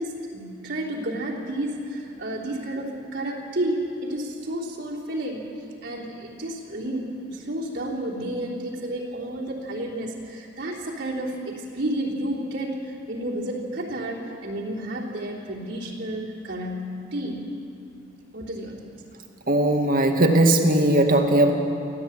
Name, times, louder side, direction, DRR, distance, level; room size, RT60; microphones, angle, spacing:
voice 1, 0.0-5.5 5.8-17.4 18.3-18.9, right 1 dB, 60° right, -4 dB, 3.3 m, -31 dB
voice 2, 19.5-21.5, right 1 dB, 45° right, 4 dB, 2.0 m, -18 dB
25.0 x 16.0 x 8.8 m, 2.7 s
head